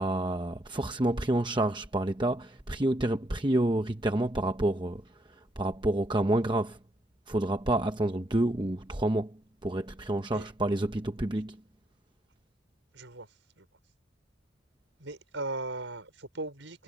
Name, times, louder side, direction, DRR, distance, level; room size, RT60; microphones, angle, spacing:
voice 1, 0.0-6.8 7.3-11.6, right 1 dB, 25° right, 0.9 m, -29 dB
voice 2, 12.9-13.3 13.6-13.7 15.0-16.8, right 2 dB, 75° right, 5.3 m, -38 dB
head